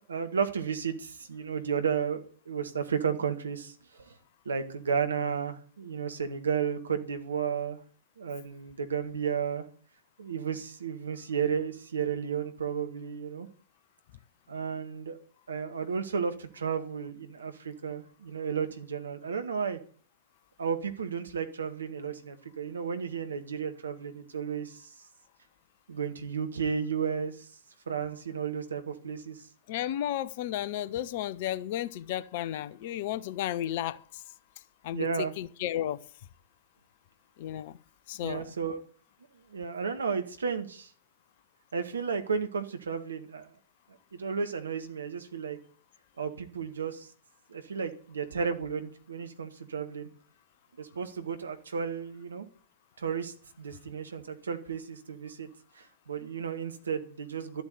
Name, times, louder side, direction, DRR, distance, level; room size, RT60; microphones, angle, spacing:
voice 1, 0.1-4.2 4.5-7.8 8.2-9.7 10.2-13.5 14.5-15.2 15.5-19.8 20.6-24.9 25.9-27.5 27.9-29.5 34.9-35.3 38.2-38.8 39.5-40.9 41.7-43.5 44.1-45.6 46.2-47.1 47.5-50.1 50.8-52.5 53.0-55.5 55.7-57.6, right 6 dB, 70° right, 1.9 m, -33 dB
voice 2, 29.7-34.0 34.8-35.1 35.4-36.0 37.4-37.7 38.1-38.5, left 12 dB, 45° left, 0.8 m, -33 dB
12.5 x 8.3 x 8.2 m
figure-of-eight pair, 100°, 0 cm